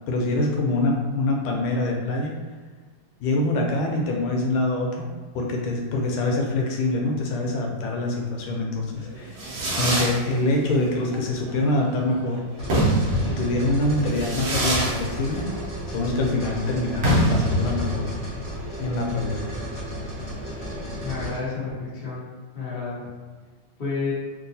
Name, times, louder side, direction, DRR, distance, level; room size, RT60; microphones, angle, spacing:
voice 1, 0.0-2.3 3.2-5.1 5.3-12.4 13.2-15.5 15.9-18.0 18.8-19.6, left 2 dB, 85° left, 0 dB, 1.5 m, -25 dB
Fireworks, 9.0-21.2, right 1 dB, 70° right, 1.5 m, -27 dB
sound 1, 12.6-21.4, equal, 15° left, 0.5 m, -34 dB
voice 2, 21.0-22.3 22.5-23.1 23.8-24.1, left 4 dB, 35° left, -8 dB, 1.0 m, -30 dB
3.8 x 2.4 x 2.6 m, 1.4 s
omnidirectional pair, 2.3 m